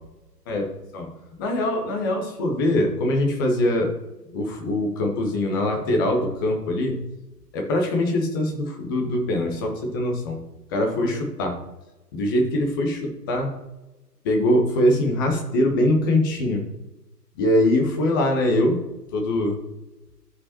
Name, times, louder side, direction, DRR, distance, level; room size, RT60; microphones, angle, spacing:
voice 1, 1.4-3.9 4.3-7.0 7.5-10.4 10.7-11.6 12.1-13.6 14.2-16.6 17.4-18.8 19.1-19.6, left 1 dB, 15° left, 2 dB, 0.7 m, -22 dB
13.0 x 5.0 x 2.8 m, 1.0 s
figure-of-eight pair, 130°, 49 cm